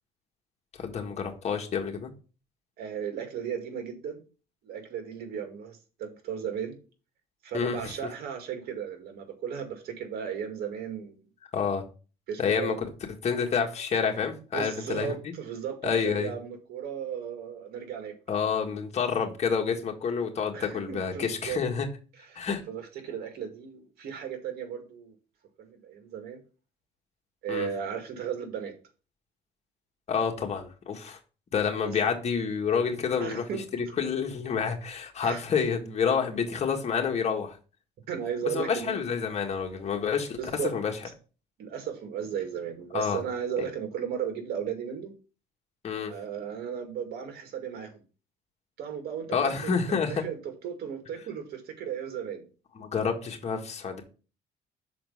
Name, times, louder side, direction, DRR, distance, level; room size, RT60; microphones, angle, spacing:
voice 1, 0.8-2.1 7.5-7.9 11.5-11.8 12.4-12.7 13.2-15.2 15.8-16.3 18.3-21.9 22.3-22.6 27.5-27.7 30.1-31.2 31.5-33.4 33.7-37.6 38.5-40.4 40.6-40.9 42.9-43.2 45.8-46.1 49.3-50.2 52.7-54.0, left 6 dB, 40° left, 1.7 m, -28 dB
voice 2, 2.8-4.2 4.6-6.8 7.4-11.2 12.3-12.8 14.5-18.1 20.5-21.6 22.3-25.1 25.6-26.4 27.4-28.7 31.8-31.9 33.2-33.6 35.2-35.4 38.1-39.1 40.4-40.7 41.6-45.1 46.1-48.0 48.8-49.3 49.6-52.4, right 8 dB, 70° right, 2.0 m, -35 dB
6.2 x 4.3 x 5.5 m
cardioid pair, 110°, 17 cm